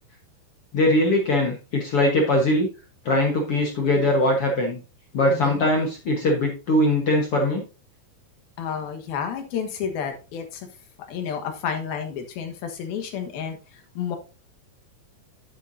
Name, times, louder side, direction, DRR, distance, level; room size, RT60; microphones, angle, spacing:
voice 1, 0.7-2.7 3.0-4.8 5.1-7.6, left 1 dB, 55° left, 1 dB, 1.6 m, -21 dB
voice 2, 5.3-5.6 8.6-10.7 11.1-14.2, left 7 dB, 75° left, 5 dB, 3.3 m, -31 dB
10.5 x 9.1 x 2.7 m, 0.32 s
omnidirectional pair, 4.4 m